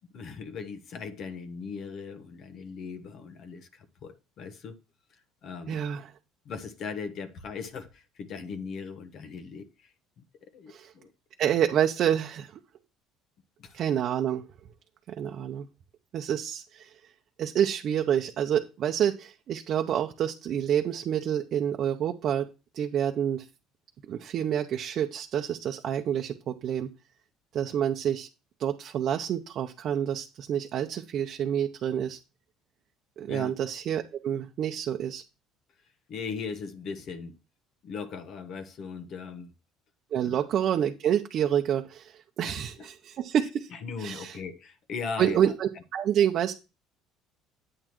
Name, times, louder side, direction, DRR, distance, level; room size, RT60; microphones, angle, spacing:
voice 1, 0.1-4.8 5.4-5.8 6.4-9.9 10.4-11.1 13.6-13.8 33.3-33.5 36.1-37.4 37.8-39.5 40.2-40.4 42.4-42.9 43.7-45.5, left 5 dB, 55° left, 1.1 m, -39 dB
voice 2, 5.7-6.1 10.7-10.9 11.4-12.5 13.7-14.4 15.1-15.7 16.1-16.9 17.4-22.5 22.7-23.5 24.1-26.9 27.5-28.3 28.6-32.2 33.2-35.2 40.1-43.7 44.0-44.4 45.2-46.5, right 9 dB, 55° right, 0.7 m, -28 dB
8.9 x 8.6 x 3.1 m
supercardioid pair, 75°, 0 cm